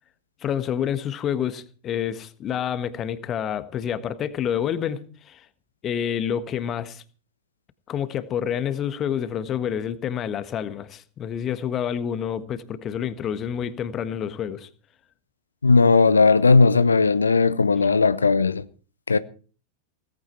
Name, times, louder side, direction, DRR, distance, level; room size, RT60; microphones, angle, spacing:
voice 1, 0.4-5.4 5.8-7.0 7.9-14.7, left 9 dB, 30° left, 1.4 m, -28 dB
voice 2, 15.6-18.6 19.1-19.2, left 4 dB, 75° left, 0.7 m, -17 dB
18.0 x 15.0 x 4.5 m
figure-of-eight pair, 90°, 0 cm